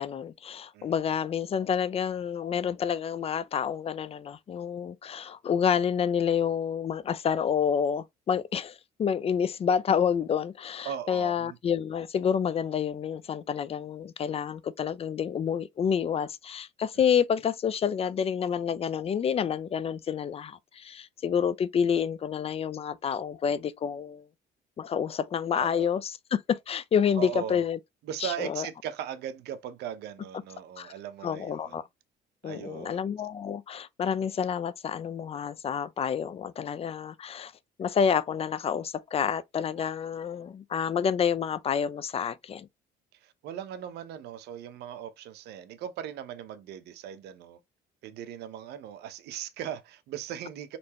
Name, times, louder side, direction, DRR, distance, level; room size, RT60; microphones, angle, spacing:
voice 1, 0.0-24.3 24.8-27.8 28.2-28.7 30.8-30.9 31.2-31.8 32.4-37.5 37.8-42.7, left 7 dB, 35° left, 0.4 m, -28 dB
voice 2, 10.8-11.6 25.5-25.9 27.2-27.6 28.0-31.8 32.4-33.1 43.1-47.6 48.0-50.8, right 10 dB, 75° right, 0.8 m, -38 dB
4.3 x 3.2 x 2.9 m
cardioid pair, 110°, 17 cm